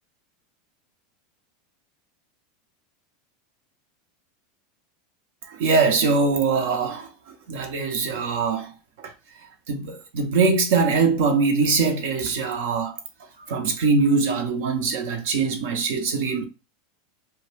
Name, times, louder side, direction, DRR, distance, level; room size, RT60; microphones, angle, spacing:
voice 1, 5.5-8.7 9.0-9.1 9.7-13.0 13.5-16.5, right 4 dB, 70° right, 0.5 m, -22 dB
2.2 x 2.1 x 3.2 m
hypercardioid pair, 95°, 0 cm